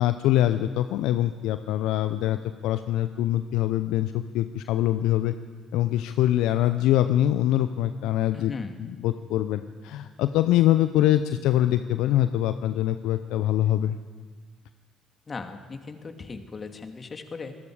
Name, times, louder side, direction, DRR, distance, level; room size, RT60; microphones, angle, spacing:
voice 1, 0.0-2.4 2.6-5.3 5.7-8.5 9.0-14.0, left 13 dB, 70° left, 11 dB, 0.7 m, -24 dB
voice 2, 8.3-8.8 15.3-17.6, left 4 dB, 35° left, 6 dB, 2.6 m, -38 dB
27.0 x 20.0 x 5.0 m, 1.5 s
hypercardioid pair, 50°, 0 cm